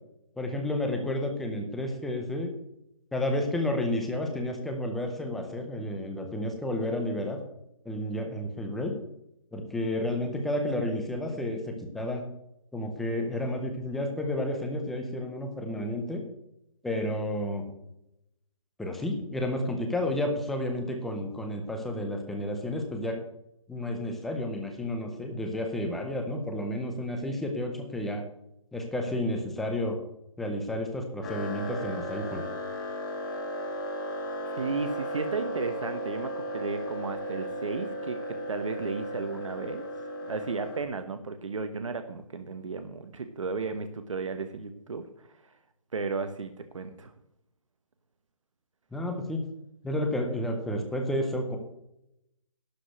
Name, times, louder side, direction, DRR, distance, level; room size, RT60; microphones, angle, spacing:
voice 1, 0.4-2.5 3.1-7.4 7.8-8.9 9.5-12.2 12.7-16.2 16.8-17.7 18.8-23.2 23.7-28.2 28.7-30.0 30.4-32.5 48.9-49.4 49.8-51.6, left 1 dB, ahead, 3 dB, 0.5 m, -31 dB
sound 1, 31.2-40.8, equal, 40° left, 2.2 m, -35 dB
voice 2, 34.5-39.8 40.2-45.5 45.9-47.1, right 4 dB, 65° right, 9 dB, 1.1 m, -34 dB
12.0 x 5.0 x 7.9 m, 0.81 s
hypercardioid pair, 165°, 18 cm